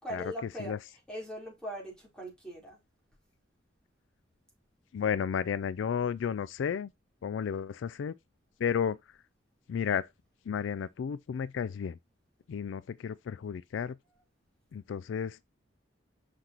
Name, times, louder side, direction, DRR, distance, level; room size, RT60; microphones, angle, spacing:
voice 1, 0.0-2.8 14.1-14.2, equal, 5° left, 4.0 m, -41 dB
voice 2, 4.9-6.9 7.2-8.1 8.6-9.0 9.7-10.1 10.5-12.0 12.5-14.0 14.7-15.4, left 7 dB, 75° left, 0.3 m, -32 dB
6.7 x 5.8 x 3.0 m
head